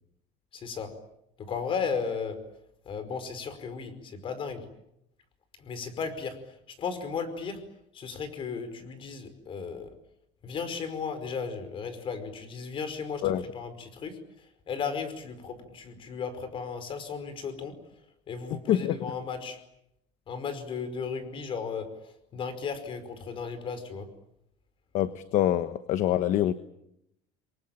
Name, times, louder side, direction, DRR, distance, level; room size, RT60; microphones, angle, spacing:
voice 1, 0.5-0.9 1.4-2.4 2.8-4.6 5.6-7.6 7.9-9.9 10.4-14.2 14.7-17.8 18.3-19.6 20.3-24.1, left 5 dB, 30° left, 11 dB, 5.0 m, -35 dB
voice 2, 24.9-26.5, left 12 dB, 45° left, 12 dB, 1.2 m, -25 dB
29.0 x 23.0 x 8.9 m, 0.80 s
cardioid pair, 160°, 17 cm